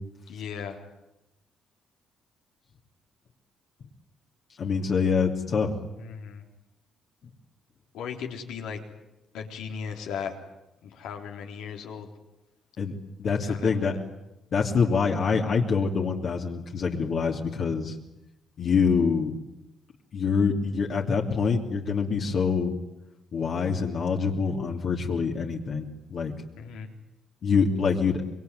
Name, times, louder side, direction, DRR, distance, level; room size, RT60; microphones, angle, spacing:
voice 1, 0.3-0.8 6.0-6.4 7.9-8.8 9.3-10.4 10.8-12.1 13.4-14.0 26.6-26.9, left 7 dB, 90° left, 3 dB, 3.8 m, -37 dB
voice 2, 4.6-5.8 12.8-12.9 13.2-13.9 14.5-17.9 18.6-19.3 20.1-22.7 23.3-26.3 27.4-28.2, left 5 dB, 55° left, 0 dB, 3.0 m, -25 dB
26.0 x 22.0 x 9.6 m, 0.91 s
cardioid pair, 90°, 0 cm